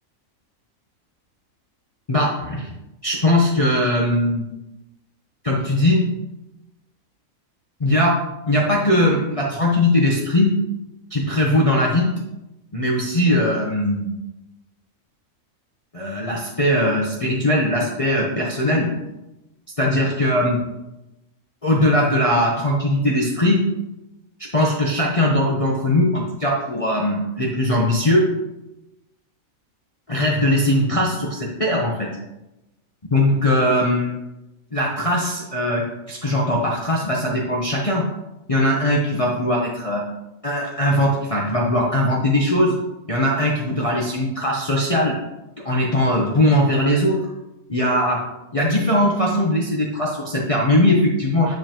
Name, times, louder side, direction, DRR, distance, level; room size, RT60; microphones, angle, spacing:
voice 1, 2.1-2.7 3.0-4.4 5.4-6.1 7.8-8.2 8.5-10.5 11.1-12.1 12.7-14.1 15.9-18.9 19.8-20.6 21.6-23.6 24.5-28.3 30.1-32.1 33.1-34.2 34.7-38.1 38.5-40.0 40.4-42.8 43.1-45.2 45.6-47.3 47.7-48.2 48.5-51.6, left 1 dB, 30° left, -3 dB, 0.8 m, -20 dB
9.3 x 5.1 x 3.0 m, 0.96 s
omnidirectional pair, 1.4 m